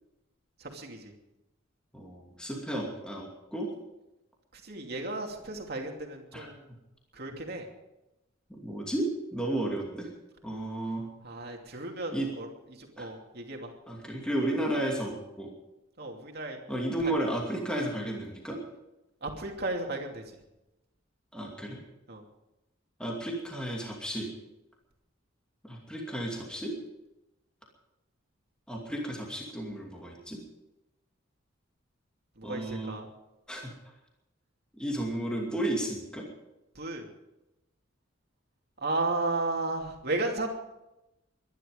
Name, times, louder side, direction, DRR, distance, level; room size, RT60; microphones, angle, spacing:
voice 1, 0.6-1.1 4.5-6.6 7.1-7.7 11.2-13.7 16.0-16.6 17.0-17.1 19.2-20.2 22.1-22.2 32.4-33.1 36.7-37.1 38.8-40.5, right 2 dB, 50° right, 2 dB, 2.7 m, -34 dB
voice 2, 1.9-3.7 6.3-6.5 8.5-10.1 10.4-11.1 12.1-12.3 13.0-13.1 13.9-15.5 16.7-18.6 21.3-21.8 23.0-24.3 25.6-26.7 28.7-30.4 32.4-33.0 33.5-33.7 34.8-36.3, right 1 dB, 5° left, -1 dB, 2.6 m, -33 dB
23.0 x 11.0 x 5.2 m, 0.94 s
head